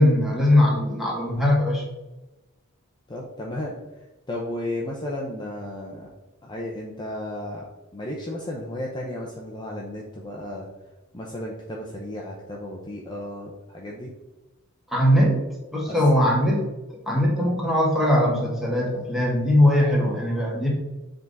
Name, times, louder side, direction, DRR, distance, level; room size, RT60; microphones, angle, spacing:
voice 1, 0.0-1.8 14.9-15.4 15.7-16.6 17.1-20.7, left 1 dB, ahead, -3 dB, 1.7 m, -20 dB
voice 2, 3.1-6.1 6.4-10.7 11.1-14.1 15.9-16.0, left 1 dB, 20° left, -2 dB, 0.8 m, -34 dB
7.2 x 3.8 x 4.1 m, 1.1 s
head